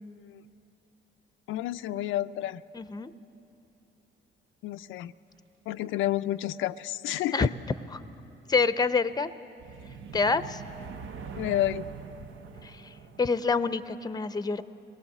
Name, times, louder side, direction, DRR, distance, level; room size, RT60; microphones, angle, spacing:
voice 1, 1.5-2.6 4.6-5.1 5.7-7.5 11.4-11.9, left 13 dB, 85° left, 10 dB, 0.4 m, -30 dB
voice 2, 2.7-3.1 7.3-7.5 7.9-8.0 8.5-9.3 10.1-10.6 12.6-14.6, left 4 dB, 20° left, 13 dB, 0.6 m, -27 dB
sound 1, 9.6-13.6, right 5 dB, 80° right, 0.9 m, -43 dB
23.5 x 18.5 x 7.3 m, 2.8 s
cardioid pair, 90°, 20 cm